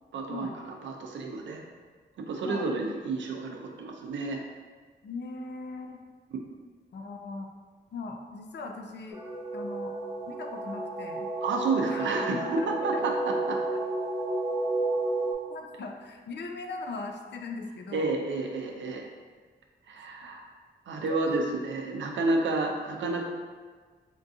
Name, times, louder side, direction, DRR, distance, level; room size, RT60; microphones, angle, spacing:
voice 1, 0.1-1.6 2.2-4.4 11.4-12.4 12.7-13.6 17.9-19.0 19.9-20.4 20.9-23.2, right 3 dB, 85° right, 2 dB, 0.4 m, -30 dB
voice 2, 2.4-2.7 5.0-6.0 6.9-7.5 7.9-9.2 9.5-9.9 10.3-11.3 11.9-13.1 15.5-18.1 21.1-21.5, left 3 dB, 65° left, 3 dB, 0.4 m, -39 dB
sound 1, 9.1-15.3, right 2 dB, 15° right, 1.3 m, -31 dB
3.7 x 2.6 x 2.4 m, 1.5 s
cardioid pair, 55°, 19 cm